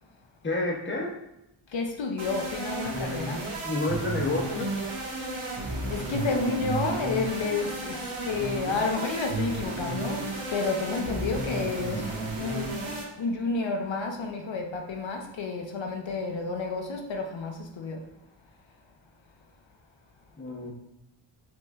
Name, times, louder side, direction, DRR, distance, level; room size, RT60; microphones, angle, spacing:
voice 1, 0.4-1.2 3.6-4.9 20.4-20.7, left 2 dB, 25° left, 0 dB, 0.7 m, -29 dB
voice 2, 1.7-3.5 5.6-18.1, left 4 dB, 70° left, 2 dB, 0.7 m, -31 dB
sound 1, 2.2-13.0, right 2 dB, 90° right, 1.2 m, -33 dB
5.9 x 3.2 x 2.3 m, 0.86 s
wide cardioid pair, 140°, 48 cm